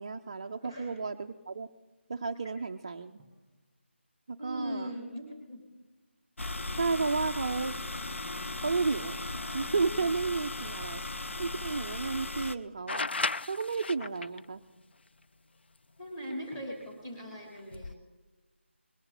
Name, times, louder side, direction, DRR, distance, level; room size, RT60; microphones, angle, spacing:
voice 1, 0.0-1.7 2.1-3.2 4.3-4.9 6.7-7.8 8.6-11.0 11.4-13.1 13.5-14.6, right 4 dB, 25° right, 5 dB, 0.4 m, -32 dB
voice 2, 0.6-0.9 2.4-2.5 4.4-5.6 16.0-17.9, equal, 20° left, 2 dB, 2.9 m, -40 dB
Drum, 3.2-4.3 6.9-8.3 10.8-12.5 16.5-17.5, right 2 dB, ahead, 1.8 m, -65 dB
sound 1, 6.4-12.6, left 2 dB, 90° left, 0.8 m, -37 dB
sound 2, 12.9-14.4 16.3-16.4 17.6-17.9, left 3 dB, 60° left, 0.4 m, -34 dB
20.5 x 11.5 x 4.1 m, 1.2 s
figure-of-eight pair, 170°, 7 cm